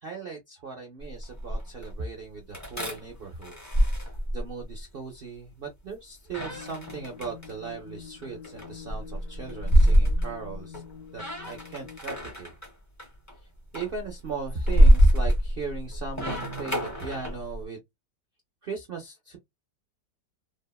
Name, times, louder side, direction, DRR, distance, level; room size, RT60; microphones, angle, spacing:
voice 1, 0.0-3.5 3.9-4.0 4.3-10.8 11.1-12.5 13.4-17.8 18.6-19.4, right 4 dB, 75° right, 0.5 m, -38 dB
sound 1, 1.0-1.9 2.5-4.8 6.3-7.5 8.2-10.9 11.1-12.7 13.0-13.3 13.7-17.6, equal, 20° left, 0.4 m, -24 dB
sound 2, 6.5-12.0, left 7 dB, 70° left, 0.8 m, -46 dB
3.4 x 2.0 x 2.2 m
omnidirectional pair, 1.9 m